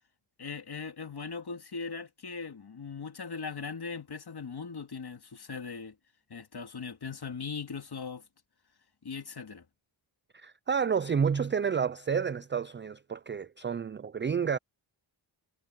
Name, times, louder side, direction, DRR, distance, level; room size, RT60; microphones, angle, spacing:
voice 1, 0.4-6.0 6.3-8.2 9.0-9.6, left 5 dB, 55° left, 2.2 m, -39 dB
voice 2, 10.3-14.6, right 6 dB, 25° right, 0.3 m, -30 dB
wide cardioid pair, 110°, 47 cm